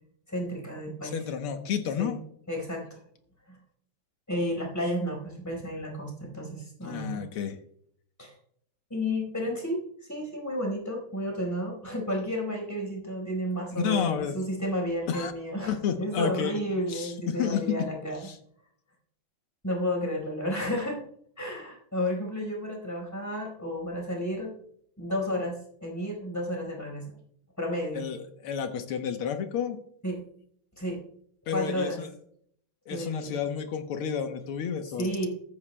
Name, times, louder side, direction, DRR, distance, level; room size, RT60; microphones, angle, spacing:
voice 1, 0.3-1.2 2.0-2.1 2.5-3.0 3.5-3.6 4.3-7.2 8.2-8.4 8.9-18.3 19.6-21.0 21.4-24.5 25.0-27.1 27.6-28.0 30.0-30.2 30.8-31.0 31.5-32.0 32.9-33.4 35.0-35.3, equal, 5° left, 0 dB, 4.4 m, -32 dB
voice 2, 1.1-2.2 6.8-7.6 13.7-14.4 15.1-15.3 15.7-16.6 16.9-17.8 18.2-18.4 27.9-29.8 31.5-32.1 32.9-35.1, left 8 dB, 85° left, 6 dB, 1.9 m, -30 dB
15.5 x 13.5 x 2.2 m, 0.67 s
omnidirectional pair, 2.4 m